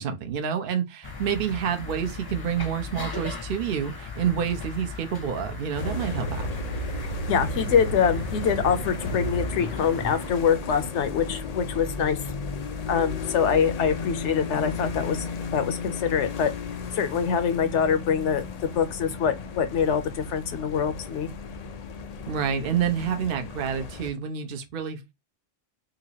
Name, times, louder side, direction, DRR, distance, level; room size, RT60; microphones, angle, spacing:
voice 1, 0.0-6.5 22.3-25.1, right 8 dB, 55° right, 0.8 m, -28 dB
sound 1, 1.0-10.3, left 4 dB, 25° left, 0.6 m, -37 dB
sound 2, 5.7-24.1, left 3 dB, 90° left, 0.3 m, -34 dB
voice 2, 7.3-12.2 12.9-15.3 15.5-16.5 16.9-21.3, left 7 dB, 70° left, 0.9 m, -24 dB
4.0 x 2.5 x 2.8 m
omnidirectional pair, 1.3 m